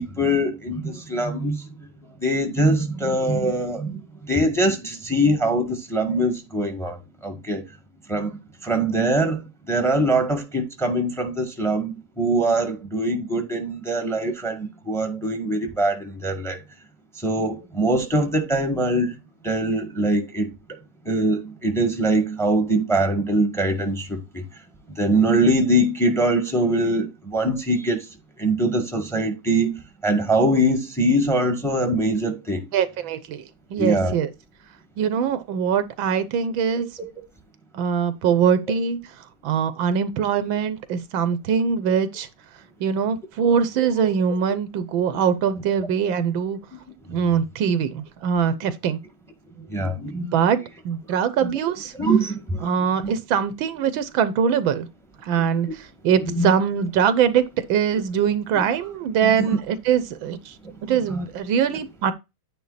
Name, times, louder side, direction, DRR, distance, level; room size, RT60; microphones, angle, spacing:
voice 1, 0.0-1.9 2.2-7.7 8.1-16.6 17.1-19.1 19.4-20.8 21.0-24.4 24.9-32.7 33.8-34.1 36.7-36.8 44.0-44.1 49.6-50.3 51.4-51.5 52.0-52.7 53.0-53.1 55.3-55.7 56.2-56.5 58.5-58.6 59.2-59.6 60.6-61.2, right 1 dB, ahead, 1.5 m, -23 dB
voice 2, 32.7-33.4 33.7-34.3 35.0-36.9 37.7-39.0 39.4-42.3 42.8-46.6 47.1-49.0 50.3-50.6 50.9-51.9 52.6-54.9 55.2-60.6 60.8-62.1, right 7 dB, 80° right, 1.6 m, -22 dB
9.5 x 4.0 x 4.1 m
omnidirectional pair, 2.2 m